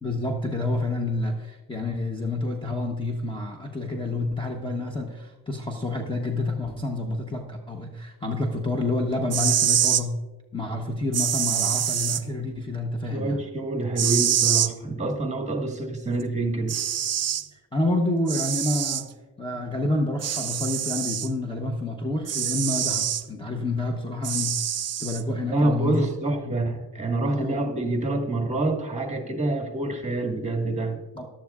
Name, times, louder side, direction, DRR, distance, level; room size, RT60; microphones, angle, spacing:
voice 1, 0.0-10.2 10.5-13.4 17.5-19.1 19.4-24.6 25.0-26.1 26.5-26.6 27.2-27.6 31.1-31.3, left 2 dB, 15° left, 2 dB, 0.9 m, -28 dB
sound 1, 9.2-10.0 11.1-12.2 14.0-14.7 16.2-16.3 16.7-17.5 18.3-19.0 20.2-21.3 22.3-23.2 24.2-25.2, right 9 dB, 40° right, 0.5 m, -25 dB
voice 2, 13.1-16.8 25.5-31.0, right 2 dB, 15° right, 2 dB, 1.6 m, -26 dB
15.0 x 11.5 x 2.4 m, 1.2 s
wide cardioid pair, 125°, 39 cm